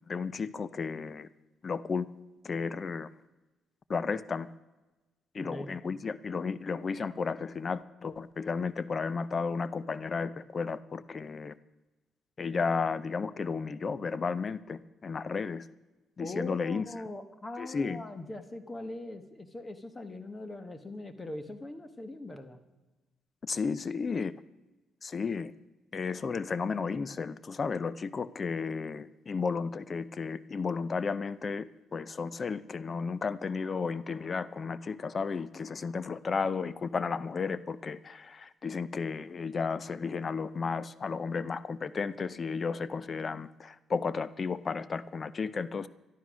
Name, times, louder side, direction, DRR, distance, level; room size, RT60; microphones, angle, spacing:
voice 1, 0.1-1.3 1.6-2.1 2.4-3.1 3.9-4.5 5.3-11.5 12.4-15.7 16.2-16.8 17.6-18.0 23.4-24.3 25.0-25.5 25.9-45.9, left 5 dB, 40° left, 17 dB, 0.5 m, -33 dB
voice 2, 5.4-5.7 16.2-22.6, left 2 dB, 20° left, 9 dB, 1.2 m, -41 dB
12.5 x 12.5 x 6.2 m, 1.1 s
cardioid pair, 90°, 0 cm